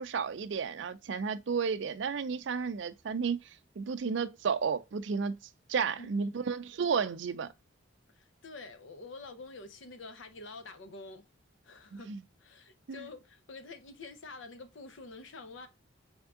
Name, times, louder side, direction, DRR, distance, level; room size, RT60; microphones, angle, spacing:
voice 1, 0.0-3.4 3.8-5.4 5.7-7.5 11.9-12.2 12.9-13.0, right 5 dB, 65° right, 0.4 m, -32 dB
voice 2, 6.0-6.4 8.1-11.2 11.6-12.1 12.4-15.7, left 3 dB, 75° left, 0.7 m, -47 dB
3.6 x 3.5 x 3.6 m
head